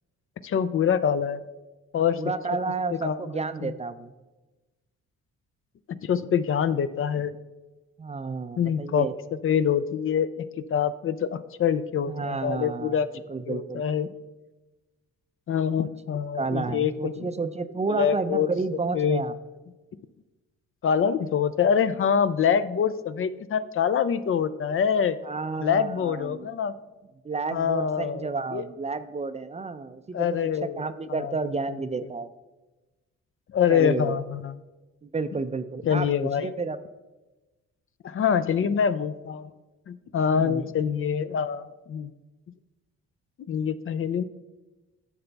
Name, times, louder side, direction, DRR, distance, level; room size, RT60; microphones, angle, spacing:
voice 1, 0.4-1.4 1.9-2.2 3.0-3.3 3.6-3.7 5.9-7.3 8.6-9.1 9.4-13.1 13.5-14.1 15.5-17.1 17.9-18.5 18.9-19.2 20.8-25.2 25.6-26.7 27.5-28.6 30.1-30.8 31.1-31.3 33.5-34.5 35.8-36.5 38.0-39.5 39.9-42.1 43.5-44.2, left 7 dB, 45° left, 14 dB, 0.5 m, -25 dB
voice 2, 2.0-4.1 8.0-9.1 12.1-13.0 13.3-13.9 15.8-15.9 16.3-19.3 25.2-26.5 27.2-30.5 30.8-32.3 33.7-34.2 35.0-36.8 40.3-40.7, right 4 dB, 20° right, 11 dB, 0.5 m, -31 dB
10.5 x 6.9 x 3.4 m, 1.1 s
cardioid pair, 90°, 30 cm